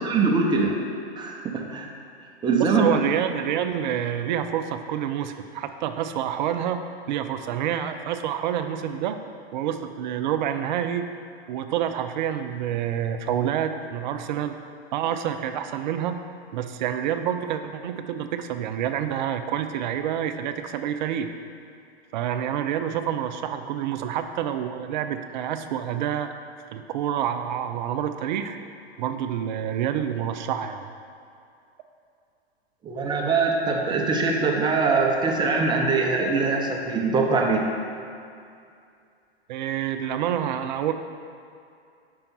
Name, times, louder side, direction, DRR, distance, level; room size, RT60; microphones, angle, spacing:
voice 1, 0.0-0.8 1.2-1.9 2.4-2.8 32.8-37.6, right 4 dB, 15° right, 0 dB, 0.7 m, -23 dB
voice 2, 2.6-9.2 9.5-11.1 11.5-14.6 14.9-16.2 16.5-21.3 22.1-26.3 26.7-28.6 29.0-30.9 39.5-40.9, right 9 dB, 45° right, 8 dB, 0.4 m, -28 dB
5.4 x 4.4 x 5.5 m, 2.4 s
hypercardioid pair, 105°, 32 cm